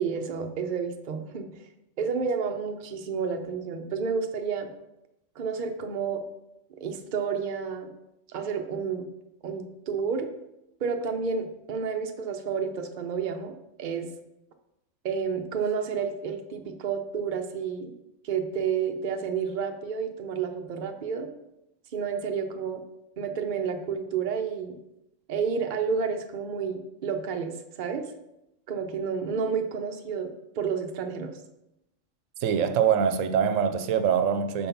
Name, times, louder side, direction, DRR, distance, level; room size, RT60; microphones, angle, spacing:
voice 1, 0.0-1.6 2.0-4.7 5.4-6.2 6.7-7.9 8.3-9.1 9.4-10.3 10.8-14.1 15.0-17.9 18.2-21.3 21.9-22.8 23.2-24.8 25.3-28.1 28.7-30.3 30.6-31.3, right 6 dB, 50° right, 0.7 m, -30 dB
voice 2, 32.4-34.7, right 8 dB, 85° right, 1.0 m, -24 dB
5.4 x 4.2 x 5.7 m
omnidirectional pair, 1.3 m